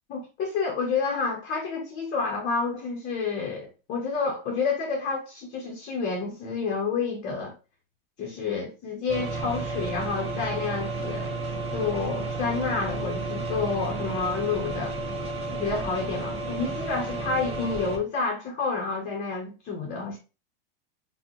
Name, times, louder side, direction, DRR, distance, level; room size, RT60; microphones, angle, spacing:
voice 1, 0.1-7.5 8.2-11.4 11.7-14.9 15.5-20.2, left 4 dB, 35° left, 1.1 m, -29 dB
sound 1, 9.1-18.0, right 3 dB, 20° right, 1.0 m, -32 dB
5.0 x 2.5 x 3.0 m
supercardioid pair, 135°, 29 cm